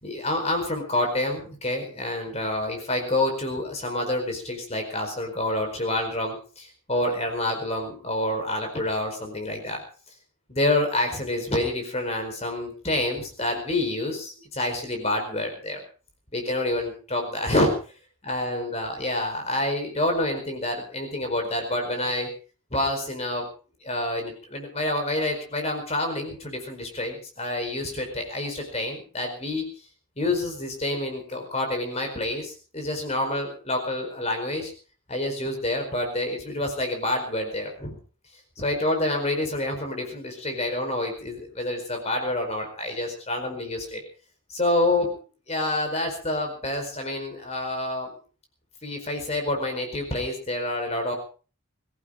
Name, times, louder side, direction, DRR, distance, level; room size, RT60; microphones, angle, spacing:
voice 1, 0.0-9.8 10.5-15.8 16.3-17.7 18.3-22.3 22.7-23.5 23.8-29.7 30.2-34.7 35.1-38.0 38.6-44.0 44.5-45.1 45.5-48.1 48.8-51.1, left 1 dB, 30° left, 4 dB, 4.7 m, -28 dB
24.5 x 15.0 x 3.8 m, 0.38 s
head